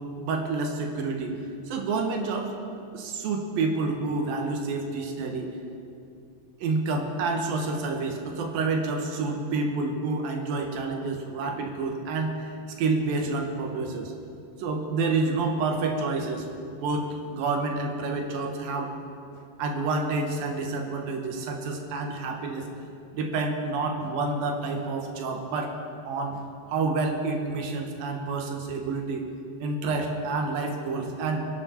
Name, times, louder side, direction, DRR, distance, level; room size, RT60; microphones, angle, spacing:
voice 1, 0.2-1.4 1.7-2.6 2.9-5.5 6.6-12.5 12.8-14.1 14.6-16.5 16.8-18.9 19.6-22.7 23.1-25.7 26.1-26.5 26.7-29.3 29.6-31.5, right 3 dB, 75° right, 3 dB, 3.0 m, -28 dB
24.5 x 9.8 x 4.4 m, 2.5 s
omnidirectional pair, 4.2 m